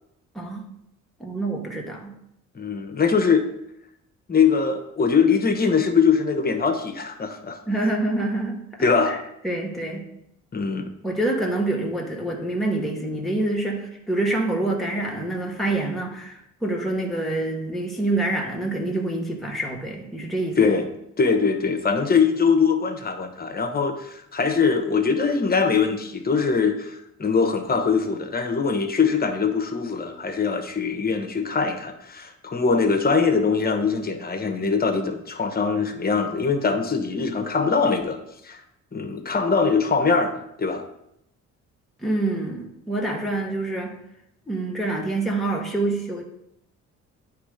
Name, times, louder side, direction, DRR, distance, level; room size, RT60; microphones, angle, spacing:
voice 1, 0.3-0.7 1.2-2.1 7.7-9.2 9.4-10.1 11.0-20.6 42.0-44.0 44.5-46.2, right 2 dB, ahead, -2 dB, 1.3 m, -26 dB
voice 2, 2.5-3.4 4.3-7.9 8.8-9.2 10.5-10.9 20.6-20.9 21.2-38.2 38.4-38.6 38.9-40.8, left 5 dB, 30° left, 5 dB, 1.0 m, -22 dB
9.2 x 3.2 x 5.0 m, 0.81 s
cardioid pair, 90°, 30 cm